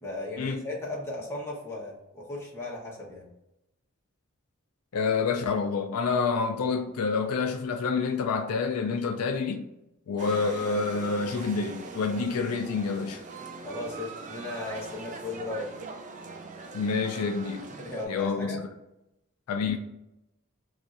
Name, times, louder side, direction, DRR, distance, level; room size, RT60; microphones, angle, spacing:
voice 1, 0.0-3.3 13.6-15.7 17.8-18.7, left 2 dB, 10° left, 0.9 m, -36 dB
voice 2, 4.9-9.6 10.1-13.2 16.7-17.7 18.1-18.7 19.5-19.8, left 5 dB, 85° left, 0.4 m, -28 dB
sound 1, 10.2-18.1, right 4 dB, 35° right, 0.3 m, -42 dB
2.6 x 2.4 x 4.1 m
head